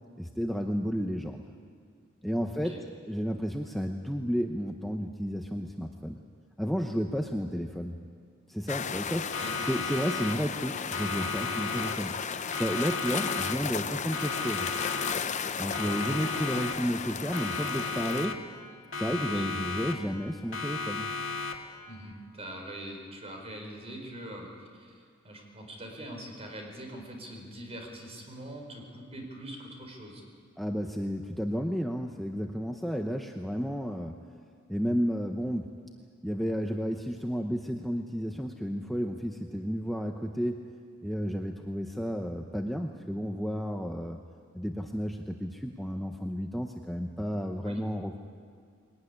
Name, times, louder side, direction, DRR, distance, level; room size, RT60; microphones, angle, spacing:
voice 1, 0.2-1.4 2.2-2.8 3.1-6.2 6.6-8.0 8.5-9.4 9.7-12.1 12.5-14.7 15.6-18.5 18.9-21.1 30.6-34.2 34.7-35.8 36.2-40.6 41.0-44.2 44.5-48.2, equal, ahead, 3 dB, 0.8 m, -32 dB
sound 1, 8.7-18.3, left 6 dB, 35° left, 0.7 m, -35 dB
Siren, 9.3-10.6 10.9-12.2 12.5-13.8 14.1-15.4 15.7-17.0 17.3-18.6 18.9-20.2 20.5-21.8, left 4 dB, 80° left, 2.1 m, -35 dB
voice 2, 21.9-30.2 47.6-47.8, right 1 dB, 30° right, 2 dB, 4.4 m, -43 dB
21.5 x 18.0 x 9.8 m, 2.1 s
head